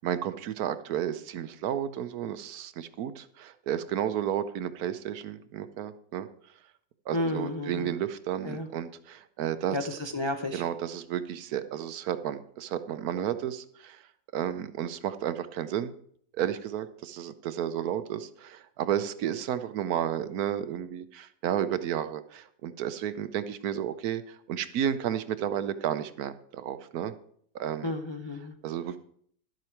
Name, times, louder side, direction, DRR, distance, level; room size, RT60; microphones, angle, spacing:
voice 1, 0.0-6.3 7.1-9.8 10.5-14.0 14.3-15.9 16.4-27.1 27.5-27.9 28.6-29.0, right 10 dB, 75° right, 12 dB, 1.2 m, -32 dB
voice 2, 7.1-7.9 8.4-8.7 9.7-10.6 27.8-28.6, left 2 dB, 40° left, 4 dB, 0.4 m, -32 dB
12.0 x 7.8 x 4.5 m, 0.64 s
omnidirectional pair, 1.7 m